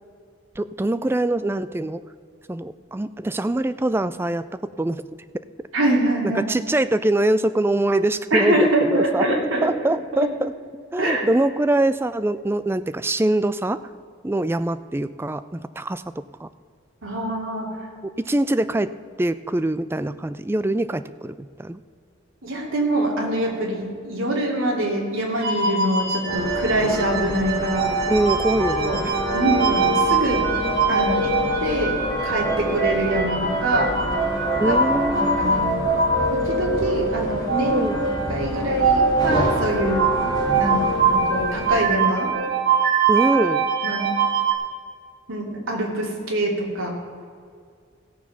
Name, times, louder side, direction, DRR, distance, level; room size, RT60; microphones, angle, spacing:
voice 1, 0.6-2.0 2.5-4.4 4.8-5.0 6.3-9.2 9.6-10.5 10.9-13.8 14.2-16.5 18.2-18.9 19.2-21.8 28.1-29.1 34.6-35.5 37.7-38.0 43.1-43.7, right 1 dB, 10° right, 13 dB, 0.3 m, -23 dB
voice 2, 5.7-6.4 8.3-9.7 10.1-10.3 11.0-11.3 17.0-17.7 22.4-27.9 28.7-29.0 29.3-30.4 30.9-31.3 31.6-33.9 34.6-35.7 36.3-37.9 38.3-40.8 41.1-42.3 43.8-44.1 45.3-46.9, right 1 dB, 85° right, -1 dB, 2.8 m, -24 dB
sound 1, 25.4-44.5, right 5 dB, 50° right, 1.4 m, -23 dB
sound 2, 26.3-41.9, left 2 dB, 20° left, 2.1 m, -28 dB
16.5 x 7.1 x 5.8 m, 2.1 s
head